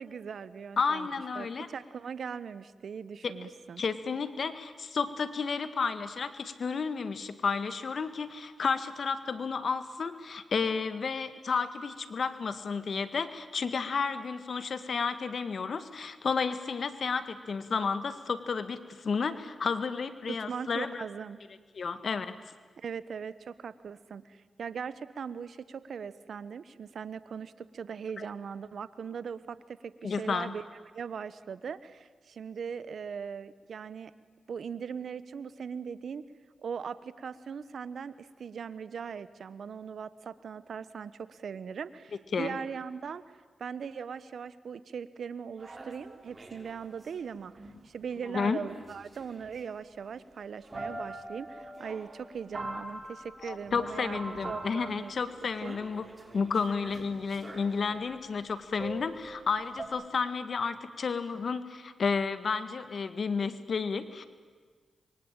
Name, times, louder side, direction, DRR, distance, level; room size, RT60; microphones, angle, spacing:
voice 1, 0.0-1.1 1.3-3.8 20.3-21.4 22.8-30.6 30.9-34.1 34.5-36.2 36.6-43.2 43.6-47.5 47.8-55.1 55.6-55.8, right 6 dB, 75° right, 16 dB, 1.1 m, -40 dB
voice 2, 0.8-1.7 3.2-3.3 3.8-21.0 21.7-22.4 28.2-28.3 30.0-30.5 42.3-42.5 48.3-48.6 53.4-56.1 56.3-64.3, left 5 dB, 65° left, 12 dB, 1.8 m, -32 dB
sound 1, 45.6-47.1 47.5-47.9 48.1-48.2 48.6-49.6 50.2-50.3 50.6-58.0 58.8-59.8, right 2 dB, 35° right, 5.9 m, -44 dB
27.0 x 23.5 x 9.0 m, 1.5 s
supercardioid pair, 40°, 0 cm